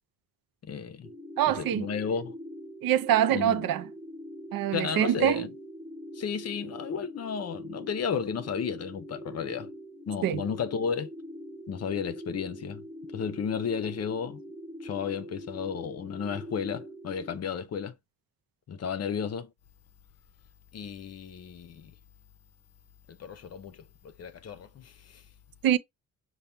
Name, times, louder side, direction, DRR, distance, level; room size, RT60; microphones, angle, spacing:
voice 1, 0.6-1.1 1.5-2.4 3.3-3.7 4.7-5.5 6.1-9.7 10.1-11.1 11.7-14.4 14.8-18.0 18.7-19.5 20.7-22.0 23.1-25.3, left 7 dB, 45° left, 0.6 m, -33 dB
sound 1, 1.0-17.4, equal, ahead, 0.5 m, -43 dB
voice 2, 1.4-1.9 2.8-3.8 4.5-5.5 10.2-10.4 25.6-25.8, right 11 dB, 75° right, 0.6 m, -24 dB
5.7 x 2.2 x 3.4 m
wide cardioid pair, 150°, 35 cm